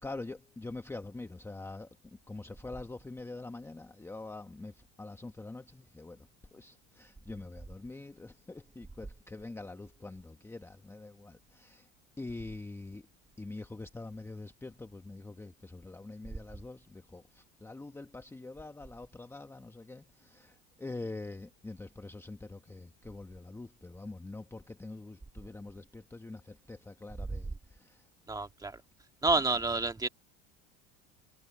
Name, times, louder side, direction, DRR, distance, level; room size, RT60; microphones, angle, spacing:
voice 1, 0.0-11.9 12.2-13.1 13.4-28.1, left 2 dB, 10° left, 1.1 m, -45 dB
voice 2, 28.3-28.8 29.2-30.1, right 3 dB, 10° right, 1.9 m, -29 dB
supercardioid pair, 125°, 31 cm